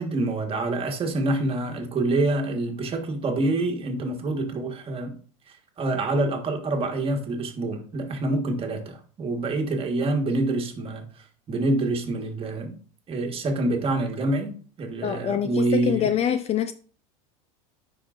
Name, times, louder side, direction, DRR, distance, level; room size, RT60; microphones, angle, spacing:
voice 1, 0.0-5.2 5.5-12.7 13.1-16.1, right 2 dB, 30° right, 1.5 m, -26 dB
voice 2, 15.0-16.7, left 9 dB, 35° left, 0.5 m, -25 dB
10.0 x 4.8 x 2.5 m
supercardioid pair, 105°, 18 cm